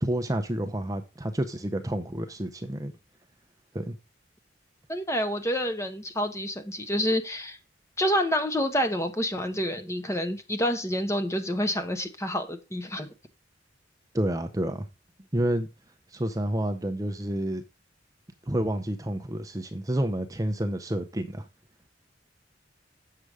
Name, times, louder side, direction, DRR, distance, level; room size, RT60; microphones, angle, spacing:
voice 1, 0.0-2.9 3.7-3.9 14.1-14.9 15.3-15.7 16.1-17.6 18.5-21.5, right 1 dB, 20° right, 0.6 m, -29 dB
voice 2, 4.9-7.6 8.0-13.1, equal, 15° left, 1.0 m, -28 dB
7.8 x 6.7 x 4.8 m
head